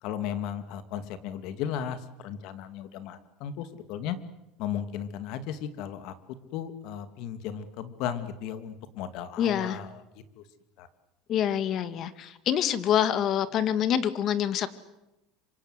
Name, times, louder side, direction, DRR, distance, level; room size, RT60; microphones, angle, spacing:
voice 1, 0.0-4.2 4.6-6.1 6.5-10.0 10.4-10.5 10.8-10.9, left 9 dB, 60° left, 11 dB, 2.6 m, -35 dB
voice 2, 9.4-9.8 11.3-14.7, left 9 dB, 45° left, 13 dB, 2.1 m, -26 dB
26.5 x 25.5 x 8.3 m, 0.92 s
supercardioid pair, 130°, 0 cm